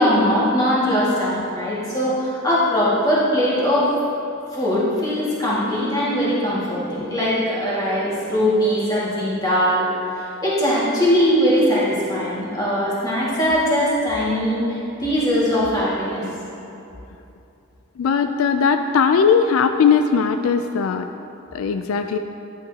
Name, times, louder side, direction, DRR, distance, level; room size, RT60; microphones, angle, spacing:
voice 1, 0.0-3.9 4.5-9.9 10.2-16.2, equal, 15° left, -8 dB, 1.9 m, -20 dB
voice 2, 18.0-21.1 21.5-22.2, left 6 dB, 80° left, 7 dB, 0.3 m, -18 dB
10.5 x 9.0 x 2.8 m, 2.8 s
head